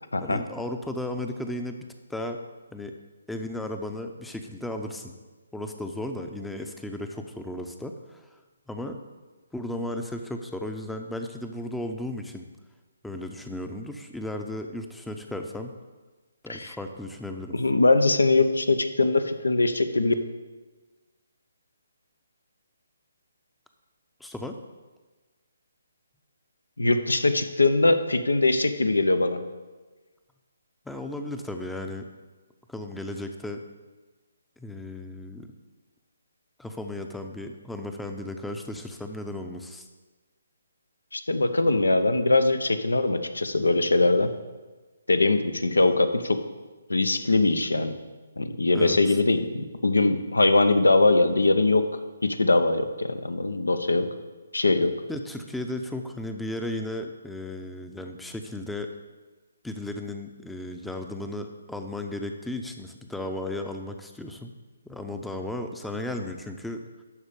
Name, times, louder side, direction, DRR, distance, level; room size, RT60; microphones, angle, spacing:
voice 1, 0.2-2.4 2.7-2.9 3.3-5.1 5.5-8.4 8.7-9.0 9.5-12.4 13.0-15.7 16.4-17.6 24.2-24.5 30.9-32.1 32.7-33.6 34.6-35.5 36.6-39.9 48.7-49.2 55.1-58.9 59.6-64.5 64.8-66.8, left 1 dB, 5° left, 5 dB, 0.7 m, -35 dB
voice 2, 17.5-20.1 26.8-29.4 41.1-44.3 45.1-46.4 46.9-47.9 48.4-51.8 52.2-54.1 54.5-54.9, left 2 dB, 85° left, 9 dB, 0.9 m, -22 dB
12.0 x 4.3 x 6.8 m, 1.3 s
figure-of-eight pair, 145°, 0 cm